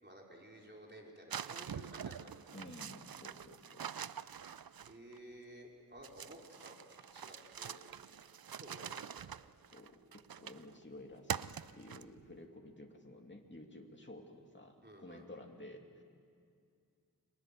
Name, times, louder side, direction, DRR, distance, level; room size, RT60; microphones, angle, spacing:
voice 1, 0.0-2.3 4.9-7.8 8.5-9.3 14.8-15.3, right 1 dB, 30° right, -1 dB, 4.2 m, -54 dB
sound 1, 1.3-5.2 6.0-10.7 11.3-12.3, right 8 dB, 75° right, 0.5 m, -45 dB
voice 2, 2.5-3.9 9.7-16.0, left 1 dB, 30° left, 1 dB, 2.5 m, -53 dB
29.5 x 23.0 x 6.8 m, 2.3 s
wide cardioid pair, 45°, 36 cm